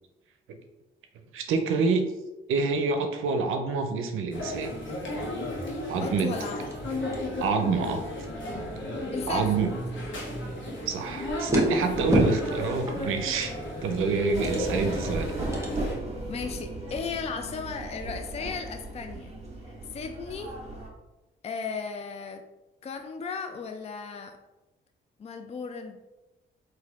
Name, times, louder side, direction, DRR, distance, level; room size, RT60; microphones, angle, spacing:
voice 1, 1.3-2.0 2.5-4.8 5.9-6.3 7.4-8.0 9.3-9.7 10.9-13.6 13.8-15.3, right 4 dB, 80° right, 6 dB, 0.5 m, -27 dB
sound 1, 4.3-15.9, left 1 dB, 65° left, 1.2 m, -34 dB
voice 2, 6.0-6.6 9.1-9.6 16.3-19.3 19.9-20.6 21.4-22.4 22.8-24.4 25.2-26.0, left 5 dB, 30° left, 6 dB, 0.4 m, -35 dB
sound 2, 6.7-15.9, equal, 15° right, 1.3 m, -34 dB
sound 3, 14.3-20.9, right 2 dB, 30° right, 1.5 m, -36 dB
4.0 x 2.6 x 4.0 m, 1.0 s
cardioid pair, 75°, 21 cm